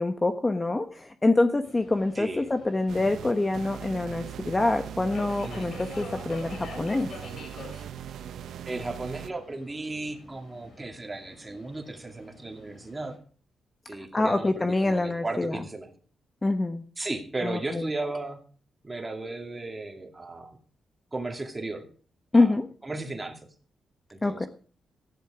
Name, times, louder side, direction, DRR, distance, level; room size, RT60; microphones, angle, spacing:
voice 1, 0.0-7.1 14.1-15.6 16.4-16.8 17.4-17.9 22.3-22.7 24.2-24.5, left 2 dB, 20° left, 7 dB, 1.0 m, -25 dB
Subway metro underground, 1.6-13.2, left 4 dB, 65° left, 5.9 m, -47 dB
voice 2, 2.1-2.5 5.4-5.7 8.7-13.2 13.9-15.9 17.0-18.4 18.8-20.6 21.1-21.8 22.3-22.5 22.8-23.4 24.1-24.5, right 2 dB, 20° right, 4 dB, 2.5 m, -35 dB
sound 1, 2.9-9.3, right 10 dB, 80° right, 0.6 m, -40 dB
14.5 x 11.0 x 4.9 m, 0.42 s
cardioid pair, 105°, 0 cm